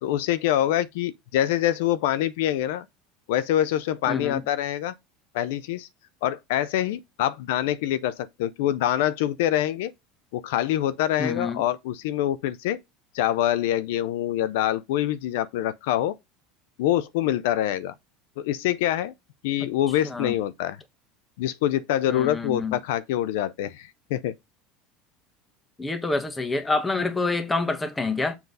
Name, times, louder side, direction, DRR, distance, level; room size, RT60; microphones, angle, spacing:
voice 1, 0.0-2.9 3.3-4.9 5.3-5.9 6.2-9.9 10.3-12.8 13.1-16.1 16.8-17.9 18.4-19.1 19.4-20.8 21.4-24.3, left 12 dB, 80° left, 0.5 m, -25 dB
voice 2, 4.1-4.4 11.2-11.6 20.0-20.4 22.1-22.8 25.8-28.4, left 3 dB, 15° left, 1.3 m, -27 dB
7.1 x 3.8 x 5.4 m
supercardioid pair, 105°, 0 cm